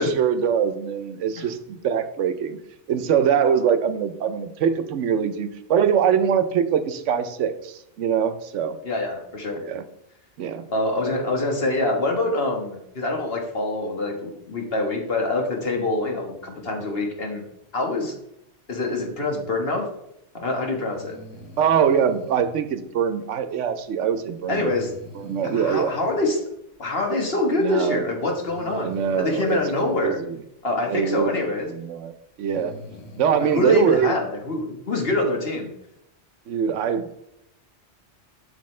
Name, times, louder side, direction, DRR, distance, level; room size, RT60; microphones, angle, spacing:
voice 1, 0.0-2.6 2.9-8.8 9.6-9.8 10.4-10.6 21.6-24.7 25.2-25.9 27.6-28.0 28.7-29.6 29.9-30.3 30.9-31.4 31.7-32.1 32.4-32.7 33.2-34.1 36.5-37.1, right 8 dB, 85° right, 11 dB, 1.0 m, -23 dB
voice 2, 8.8-9.6 10.7-17.4 17.7-18.1 18.7-19.9 20.3-21.2 24.5-24.9 25.5-26.4 26.8-30.2 30.6-31.7 33.4-35.7, left 2 dB, 55° left, 2 dB, 1.6 m, -25 dB
Breathing, 20.9-22.5 24.5-26.1 27.4-27.5 28.5-30.0 31.5-31.6 32.3-34.1, left 3 dB, 90° left, 1.5 m, -43 dB
7.8 x 6.7 x 3.2 m, 0.80 s
omnidirectional pair, 1.2 m